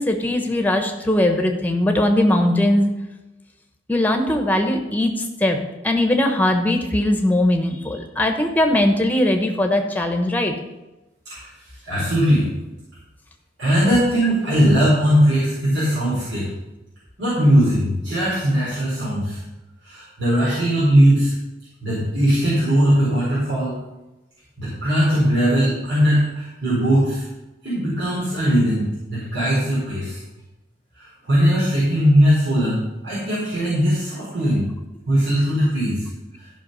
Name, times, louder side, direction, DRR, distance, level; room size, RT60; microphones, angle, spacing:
voice 1, 0.0-2.9 3.9-5.6 5.8-10.5, left 1 dB, 10° left, 4 dB, 1.1 m, -20 dB
voice 2, 11.8-12.5 13.6-16.5 17.2-19.4 19.8-21.3 21.8-23.7 24.6-27.3 27.6-30.2 31.0-34.7 35.1-36.0, equal, 80° right, -9 dB, 4.4 m, -19 dB
13.0 x 5.7 x 5.6 m, 1.0 s
head